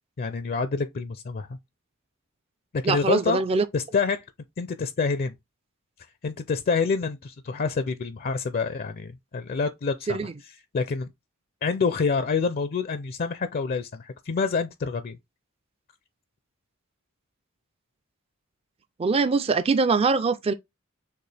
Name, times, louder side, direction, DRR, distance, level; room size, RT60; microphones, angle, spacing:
voice 1, 0.2-1.6 2.7-3.4 3.7-4.2 4.6-5.3 6.2-11.1 11.6-15.2, left 4 dB, 45° left, 0.4 m, -27 dB
voice 2, 2.8-3.6 10.1-10.3 19.0-20.5, right 4 dB, 25° right, 0.3 m, -23 dB
6.6 x 2.5 x 3.2 m
head